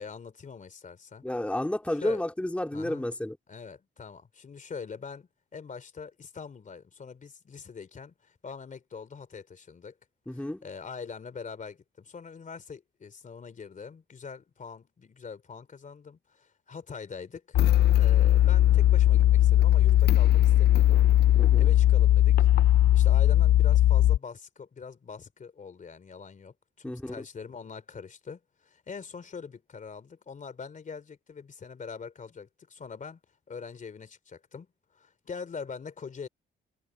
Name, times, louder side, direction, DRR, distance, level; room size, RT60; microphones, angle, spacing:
voice 1, 0.0-1.2 1.9-2.2 2.7-3.1 3.5-10.0 10.3-17.6 17.9-21.1 21.6-22.5 22.9-33.2 33.5-34.7 34.9-36.3, left 5 dB, 40° left, 3.2 m, -43 dB
voice 2, 1.2-3.4 10.3-10.6 21.3-21.7 26.8-27.2, left 1 dB, 5° left, 2.3 m, -31 dB
sound 1, 17.5-24.2, left 13 dB, 55° left, 0.4 m, -19 dB
cardioid pair, 90°, 20 cm